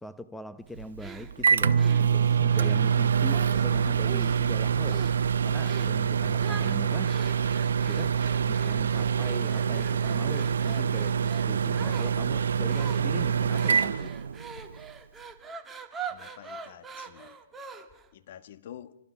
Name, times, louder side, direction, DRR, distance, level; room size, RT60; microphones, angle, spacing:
voice 1, 0.0-5.0 5.4-7.1 7.8-8.2 8.4-14.2, left 1 dB, 5° left, 0.8 m, -41 dB
Microwave oven, 0.8-14.8, right 7 dB, 75° right, 0.9 m, -25 dB
sound 1, 1.0-3.7 4.0-4.5 4.8-5.2 5.6-6.0 6.4-18.1, right 6 dB, 10° right, 1.7 m, -44 dB
voice 2, 16.1-17.4 18.1-19.0, left 10 dB, 50° left, 1.6 m, -47 dB
28.5 x 26.0 x 5.9 m
hypercardioid pair, 145°, 0 cm